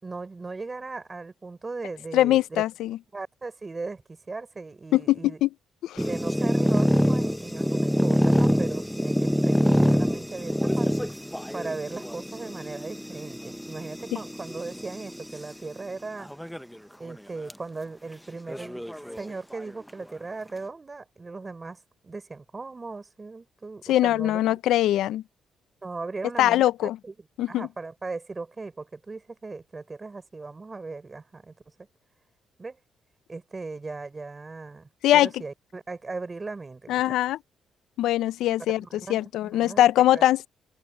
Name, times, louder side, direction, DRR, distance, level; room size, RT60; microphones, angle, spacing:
voice 1, 0.0-2.6 3.1-5.4 6.0-10.9 11.5-16.3 17.0-18.8 19.2-24.4 25.8-27.1 27.5-31.5 32.6-32.8 33.3-37.0 38.8-39.8 40.1-40.2, right 3 dB, 25° right, 5.7 m, -38 dB
voice 2, 2.1-3.0 4.9-5.5 5.8-6.0 23.9-25.2 26.4-27.0 27.4-27.7 35.0-35.3 36.9-37.4 38.0-38.8 39.1-40.4, left 13 dB, 85° left, 0.4 m, -22 dB
sound 1, 6.0-15.4 16.2-16.7 17.1-17.2 17.5-17.6 18.5-19.6, equal, ahead, 0.7 m, -25 dB
cardioid pair, 90°, 0 cm